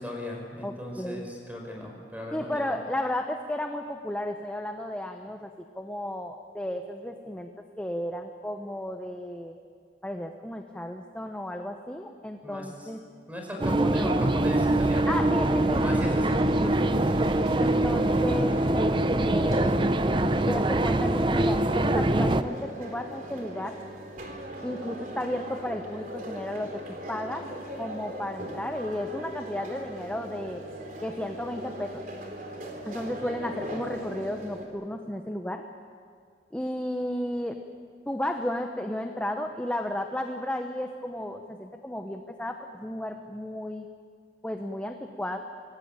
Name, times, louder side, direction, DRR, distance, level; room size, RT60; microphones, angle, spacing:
voice 1, 0.0-2.8 12.4-12.9 13.3-15.1 15.8-16.9 33.1-33.3, left 1 dB, 10° right, 1 dB, 5.3 m, -37 dB
voice 2, 0.6-1.3 2.3-7.5 7.8-9.6 10.0-13.0 15.1-15.8 16.6-16.8 17.6-19.7 20.5-23.8 24.6-27.5 27.8-30.6 31.0-32.0 32.9-35.6 36.5-37.6 38.1-43.9 44.4-45.4, left 1 dB, 5° left, 4 dB, 1.0 m, -33 dB
sound 1, 13.6-22.4, right 1 dB, 30° right, 0.7 m, -24 dB
sound 2, 15.5-34.6, equal, 50° right, 3.9 m, -39 dB
25.0 x 18.5 x 9.0 m, 2.2 s
head